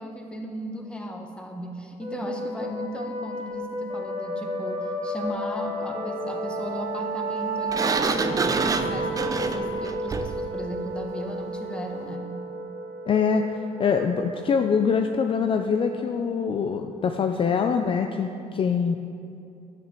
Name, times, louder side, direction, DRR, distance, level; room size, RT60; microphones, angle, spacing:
voice 1, 0.0-12.3, equal, 5° left, 2 dB, 1.2 m, -36 dB
sound 1, 2.0-17.3, right 1 dB, 45° right, 1.6 m, -32 dB
Sliding door, 7.7-10.5, right 4 dB, 25° right, 0.5 m, -27 dB
voice 2, 13.1-13.4 13.8-19.0, left 6 dB, 40° left, 5 dB, 0.5 m, -24 dB
9.9 x 5.9 x 7.5 m, 2.6 s
cardioid pair, 120°, 14 cm